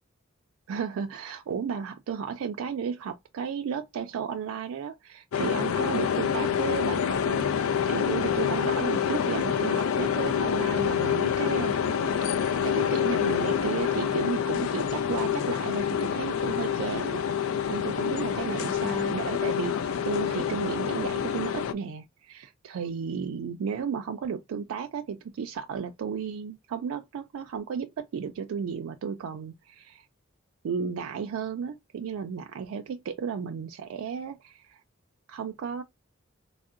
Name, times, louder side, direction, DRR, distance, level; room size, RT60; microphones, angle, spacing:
voice 1, 0.7-7.5 7.8-11.8 12.3-30.1 30.6-34.8 35.3-35.8, right 6 dB, 85° right, 0.3 m, -34 dB
sound 1, 5.3-21.7, left 8 dB, 85° left, 0.4 m, -27 dB
3.6 x 2.0 x 2.4 m
head